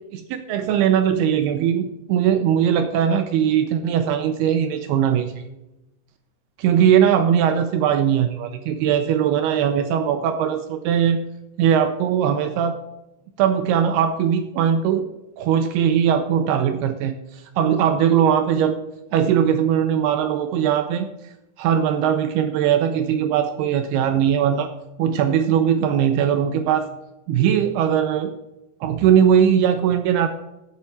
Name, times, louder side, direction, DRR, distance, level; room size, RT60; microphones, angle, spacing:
voice 1, 0.1-5.4 6.6-11.2 11.6-12.7 13.4-15.1 15.4-18.8 19.1-21.1 21.6-24.7 25.0-26.9 27.3-28.3 28.8-30.3, right 9 dB, 80° right, 8 dB, 2.3 m, -20 dB
7.8 x 7.3 x 6.9 m, 0.93 s
omnidirectional pair, 5.1 m